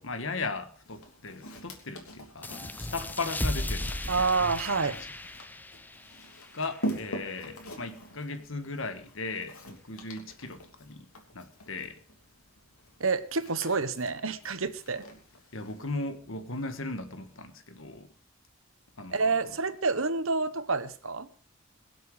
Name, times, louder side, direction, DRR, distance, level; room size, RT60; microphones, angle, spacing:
voice 1, 0.0-4.3 4.7-4.8 6.5-11.1 11.3-12.0 15.5-18.1 19.0-19.5, left 3 dB, 65° left, 9 dB, 1.6 m, -37 dB
Walk footsteps, 0.8-15.9, right 1 dB, 85° left, 3.2 m, -44 dB
sound 1, 2.4-7.7, left 1 dB, 10° left, 0.6 m, -36 dB
voice 2, 4.1-5.0 13.0-15.0 19.1-21.3, right 4 dB, 70° right, 12 dB, 1.2 m, -28 dB
22.5 x 7.9 x 4.9 m, 0.42 s
head